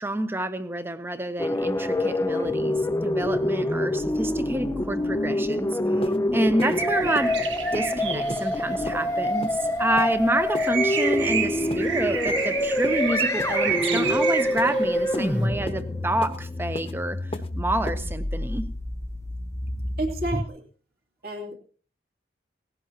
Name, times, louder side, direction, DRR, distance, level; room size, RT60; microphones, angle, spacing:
voice 1, 0.0-5.8 6.3-7.4 7.7-18.7, right 1 dB, 10° right, 0.8 m, -28 dB
sound 1, 1.4-20.4, left 1 dB, 15° left, 0.6 m, -26 dB
sound 2, 5.5-5.6 6.0-6.2 6.6-6.8 7.1-7.3 7.7-7.9 8.3-8.5 8.9-9.0 9.4-9.6 10.0-10.2 10.5-10.7 11.1-11.3 11.7-11.9 12.3-12.5 12.8-13.0 13.4-13.6 13.9-14.1 14.6-14.7 15.1-15.3 15.7-15.8 16.2-16.4 16.7-16.9 17.3-17.5 17.9-18.0, left 1 dB, 30° left, 1.0 m, -35 dB
sound 3, 6.6-15.5, right 6 dB, 85° right, 1.7 m, -31 dB
voice 2, 20.0-20.6 21.2-21.5, right 2 dB, 55° right, 2.8 m, -30 dB
18.5 x 16.0 x 2.9 m
head